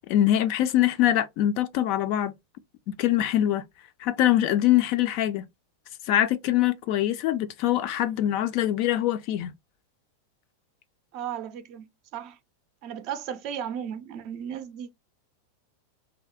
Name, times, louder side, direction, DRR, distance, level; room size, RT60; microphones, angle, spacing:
voice 1, 0.1-2.3 3.0-3.6 4.0-5.5 6.1-9.5, left 12 dB, 45° left, 0.3 m, -23 dB
voice 2, 11.1-12.4 12.8-14.9, right 9 dB, 40° right, 0.4 m, -35 dB
2.6 x 2.0 x 2.4 m
figure-of-eight pair, 90°, 0 cm